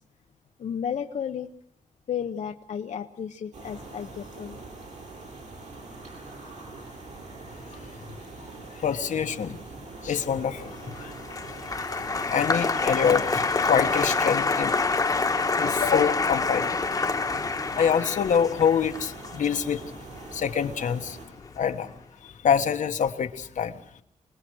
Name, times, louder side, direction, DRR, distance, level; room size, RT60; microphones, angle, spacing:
voice 1, 0.6-1.5 2.1-4.6, left 8 dB, 70° left, 5 dB, 0.8 m, -33 dB
sound 1, 3.5-21.3, right 3 dB, 65° right, 7.9 m, -43 dB
voice 2, 8.8-9.6 10.0-11.1 11.6-14.7 15.6-16.7 17.7-19.8 20.3-21.2 21.6-21.9 22.2-23.8, left 7 dB, 85° left, 7 dB, 1.4 m, -26 dB
Applause, 10.7-21.1 21.4-22.0, left 4 dB, 30° left, 1.2 m, -27 dB
26.0 x 20.0 x 6.2 m, 0.65 s
wide cardioid pair, 165°, 13 cm